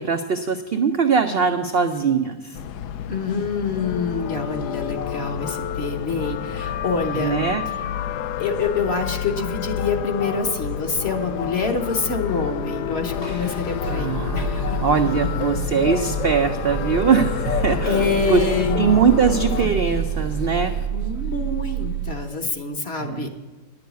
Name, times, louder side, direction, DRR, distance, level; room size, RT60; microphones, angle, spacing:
voice 1, 0.0-2.6 7.2-7.6 13.2-13.5 13.9-18.4 18.7-20.7 23.0-23.3, right 6 dB, 60° right, 6 dB, 0.6 m, -21 dB
sound 1, 2.5-19.7, left 9 dB, 80° left, 1.2 m, -29 dB
voice 2, 3.1-7.4 8.4-14.8 17.8-18.9 19.6-19.8 20.9-23.3, left 4 dB, 45° left, 4 dB, 1.2 m, -26 dB
Bird, 13.1-20.9, left 5 dB, 60° left, 0.8 m, -33 dB
sound 2, 13.8-22.1, right 6 dB, 80° right, 1.4 m, -29 dB
10.5 x 7.1 x 9.2 m, 1.2 s
omnidirectional pair, 1.7 m